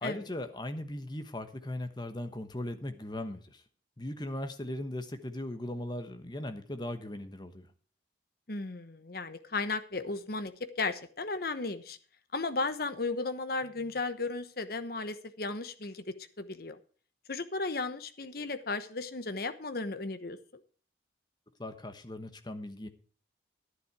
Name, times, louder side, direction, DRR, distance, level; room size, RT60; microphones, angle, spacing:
voice 1, 0.0-3.6 4.0-7.7 21.6-22.9, left 1 dB, 20° left, 9 dB, 1.1 m, -38 dB
voice 2, 8.5-10.5 10.8-12.0 12.3-16.0 16.4-16.8 17.3-20.4, left 3 dB, 50° left, 11 dB, 1.1 m, -35 dB
11.0 x 10.0 x 4.8 m, 0.41 s
head